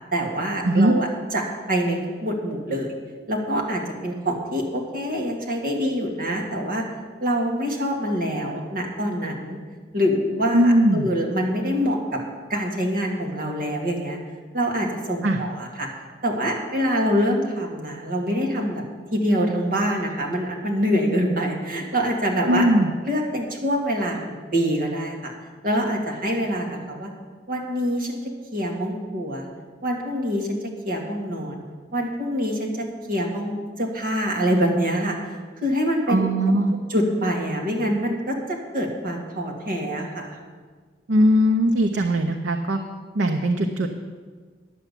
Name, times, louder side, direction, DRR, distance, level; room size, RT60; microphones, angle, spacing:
voice 1, 0.1-1.4 1.7-2.9 3.3-6.8 7.2-9.6 9.9-12.2 12.5-14.2 14.5-15.9 16.2-18.8 19.1-22.7 23.0-25.3 25.6-27.1 27.5-29.5 29.8-30.6 30.8-31.6 31.9-35.2 35.6-36.3 36.9-40.4, equal, 50° right, 0 dB, 2.0 m, -25 dB
voice 2, 10.5-11.1 15.2-15.4 22.5-22.9 36.1-36.7 41.1-42.8 43.1-43.9, right 1 dB, 85° right, 4 dB, 0.7 m, -19 dB
10.5 x 7.0 x 8.3 m, 1.5 s
head